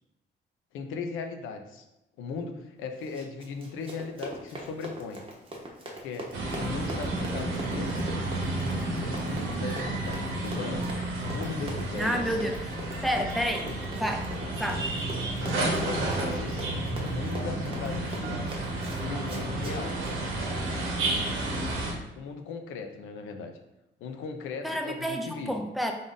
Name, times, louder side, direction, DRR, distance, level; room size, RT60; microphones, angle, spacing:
voice 1, 0.7-1.8 2.2-5.2 6.0-6.3 6.6-7.9 9.1-10.9 11.2-12.4 13.6-13.7 15.4-16.7 17.0-18.4 19.0-19.9 22.2-23.5 24.0-25.5, left 4 dB, 90° left, 5 dB, 0.5 m, -38 dB
Run, 3.0-20.2, right 1 dB, 25° right, 0.9 m, -42 dB
sound 1, 6.3-21.9, right 2 dB, 90° right, 0.9 m, -31 dB
voice 2, 12.0-12.5 13.0-13.7 13.9-14.2 14.6-14.8 24.6-25.9, equal, ahead, 3 dB, 0.5 m, -29 dB
3.6 x 2.5 x 3.8 m, 0.93 s
cardioid pair, 90°, 20 cm